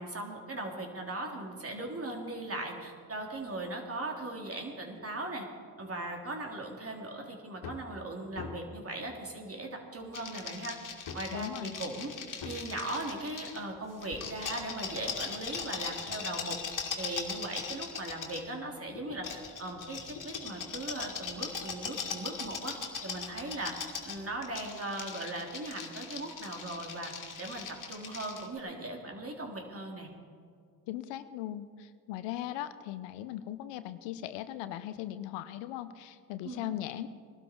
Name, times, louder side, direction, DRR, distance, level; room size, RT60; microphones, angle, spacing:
voice 1, 0.0-5.5 5.8-10.8 11.1-12.1 12.4-22.8 23.0-23.7 24.0-30.1 36.4-36.6, right 2 dB, 35° right, 1 dB, 3.3 m, -39 dB
sound 1, 7.5-7.9 8.3-8.8 9.8-9.9 11.0-11.4 12.4-12.7 14.1-15.7 16.4-16.5 17.1-17.2 17.5-17.6 18.0-19.3 20.1-20.5 21.8-21.9, left 5 dB, 60° left, 2.1 m, -46 dB
sound 2, 10.1-13.6 14.0-18.4 19.2-28.5, left 6 dB, 45° left, 2.5 m, -40 dB
voice 2, 11.3-11.7 30.9-37.1, left 12 dB, 85° left, 12 dB, 0.8 m, -39 dB
20.5 x 12.5 x 4.5 m, 2.2 s
supercardioid pair, 60°, 42 cm